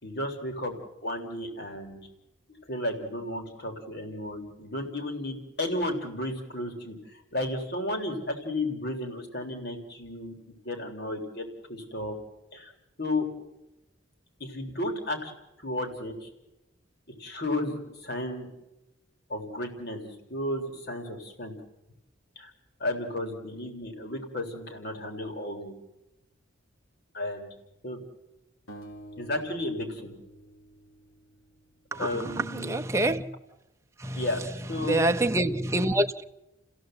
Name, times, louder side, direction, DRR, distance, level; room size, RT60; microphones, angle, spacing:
voice 1, 0.0-0.7 1.0-2.0 2.7-6.9 7.3-10.4 10.7-12.2 12.5-12.7 13.0-13.3 14.4-15.3 15.6-16.3 17.2-18.5 19.3-21.6 22.4-22.5 22.8-25.7 27.1-27.5 27.8-28.0 29.2-30.1 31.9-32.8 34.1-34.4 34.7-35.1, left 1 dB, 55° left, 3.7 m, -33 dB
sound 1, 28.7-31.8, right 1 dB, 90° left, 3.3 m, -48 dB
voice 2, 31.9-33.2 34.0-34.2 34.8-36.2, right 1 dB, 15° right, 0.8 m, -26 dB
30.0 x 16.0 x 7.9 m
head